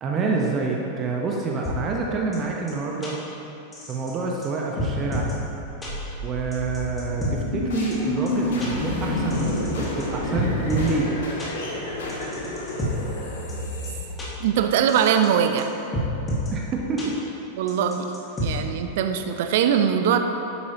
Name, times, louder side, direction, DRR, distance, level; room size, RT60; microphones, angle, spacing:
voice 1, 0.0-3.2 3.9-5.3 6.2-11.1 16.5-17.1, right 4 dB, 30° right, -1 dB, 1.0 m, -27 dB
sound 1, 1.6-1.7 2.3-2.4 2.7-2.8 3.0-3.1 3.7-4.1 4.4-4.5 4.8-5.3 5.8-5.9 6.5-7.3 7.9-8.0 8.3-8.4 8.6-8.7 9.3-10.0 10.3-10.9 11.4-11.5 12.1-12.9 13.5-13.6 13.8-13.9 14.2-14.3 14.9-15.3 15.6-15.7 15.9-16.5 17.0-17.1 17.7-18.5, right 1 dB, 20° left, 2.1 m, -29 dB
sound 2, 5.8-14.7, left 2 dB, 55° left, 1.9 m, -29 dB
voice 2, 14.4-15.7 17.6-18.1 18.4-20.2, right 8 dB, 55° right, 7 dB, 0.6 m, -21 dB
11.5 x 8.4 x 2.9 m, 3.0 s
figure-of-eight pair, 90°, 0 cm